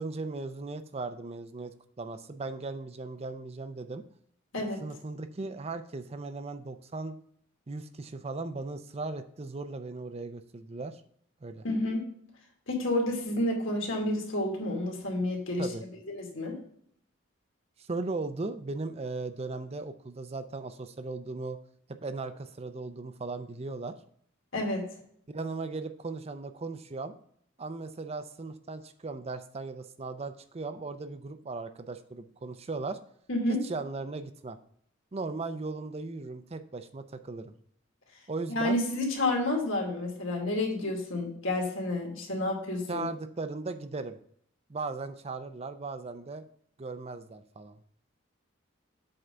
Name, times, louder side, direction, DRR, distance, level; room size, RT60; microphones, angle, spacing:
voice 1, 0.0-4.0 4.8-7.2 7.7-11.0 11.4-11.6 15.6-15.8 17.9-21.6 22.0-23.9 25.3-27.1 27.6-33.0 33.6-34.6 35.1-37.5 38.3-38.8 42.9-44.2 44.7-46.4 46.8-47.8, right 3 dB, 30° right, 10 dB, 0.5 m, -37 dB
voice 2, 11.6-12.0 12.7-15.7 16.1-16.6 24.5-24.8 33.3-33.6 38.5-43.1, left 1 dB, 75° left, 0 dB, 2.4 m, -30 dB
7.8 x 3.9 x 5.5 m, 0.64 s
head